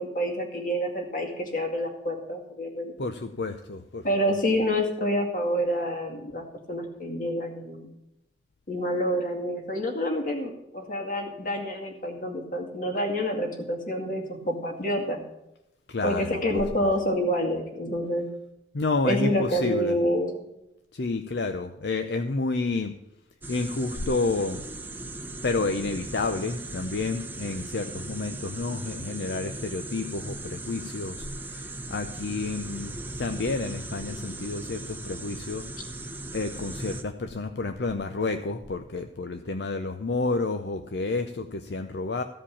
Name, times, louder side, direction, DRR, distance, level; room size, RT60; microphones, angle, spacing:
voice 1, 0.0-2.9 4.0-7.9 8.7-15.2 16.0-18.3 19.0-20.5, equal, 50° left, 2 dB, 2.1 m, -28 dB
voice 2, 3.0-4.4 15.9-16.6 18.7-19.9 20.9-22.9 23.5-24.6 25.4-32.9 33.2-35.6 35.9-36.0 36.3-42.2, left 3 dB, 75° left, 7 dB, 0.6 m, -30 dB
sound 1, 23.4-37.0, right 2 dB, 10° right, 0.8 m, -38 dB
15.0 x 5.1 x 8.5 m, 0.88 s
head